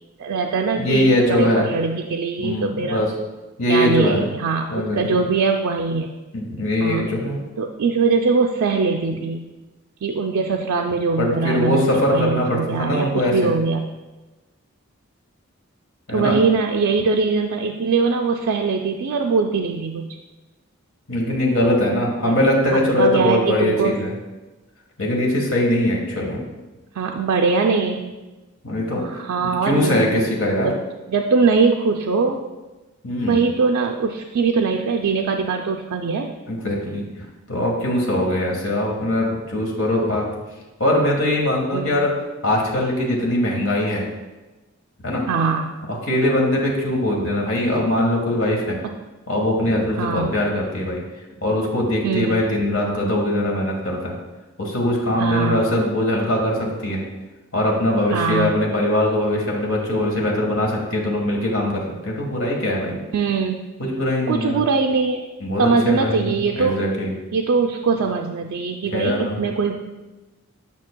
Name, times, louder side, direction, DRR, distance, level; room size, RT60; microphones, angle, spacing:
voice 1, 0.2-3.0 3.6-6.1 6.8-7.1 7.6-9.5 10.0-13.9 16.1-20.1 22.2-22.3 22.7-24.0 27.0-28.1 29.0-30.2 30.6-30.8 31.1-32.4 33.3-36.3 41.7-42.0 45.3-45.7 50.0-50.3 52.0-52.4 55.2-55.6 58.1-58.5 63.1-63.6 64.3-65.3 65.6-66.8 67.3-69.7, right 4 dB, 85° right, 2 dB, 0.4 m, -22 dB
voice 2, 0.8-1.7 2.4-3.1 3.6-4.3 4.7-5.2 6.3-7.4 11.2-13.5 16.1-16.4 21.1-24.1 25.0-26.4 28.6-29.0 29.6-30.7 33.0-33.5 36.5-40.2 40.8-42.1 42.4-44.1 45.0-45.2 46.1-48.8 49.3-51.0 51.4-54.1 54.6-57.0 57.5-63.0 63.8-64.6 65.4-67.1 68.9-69.4, left 1 dB, 70° left, -1 dB, 1.4 m, -21 dB
9.1 x 5.5 x 2.2 m, 1.1 s
head